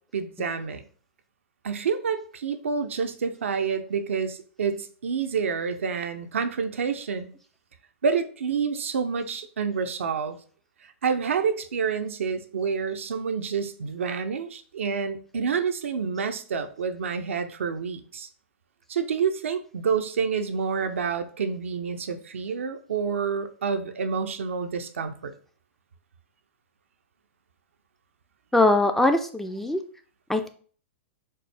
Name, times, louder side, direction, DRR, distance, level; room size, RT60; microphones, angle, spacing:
voice 1, 0.1-0.8 1.6-7.3 8.0-10.4 11.0-18.3 18.9-25.3, right 6 dB, 80° right, 8 dB, 0.5 m, -28 dB
voice 2, 28.5-29.8 30.3-30.5, left 2 dB, 5° left, 7 dB, 0.3 m, -22 dB
4.3 x 2.0 x 3.3 m, 0.44 s
hypercardioid pair, 115°, 7 cm